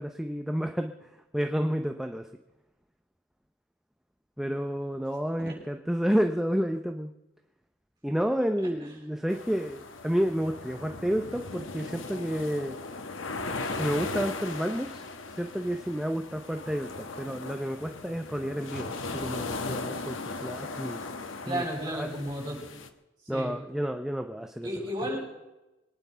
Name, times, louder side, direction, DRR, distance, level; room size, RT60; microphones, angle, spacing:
voice 1, 0.0-2.3 4.4-7.1 8.0-12.8 13.7-15.0 15.3-21.0 21.5-22.1 23.3-24.7, equal, ahead, 5 dB, 0.7 m, -30 dB
sound 1, 9.3-22.9, left 3 dB, 90° left, 1.4 m, -38 dB
voice 2, 21.4-22.6 23.3-23.5 24.6-25.2, equal, 20° right, -3 dB, 7.7 m, -33 dB
24.0 x 9.7 x 5.7 m, 0.98 s
head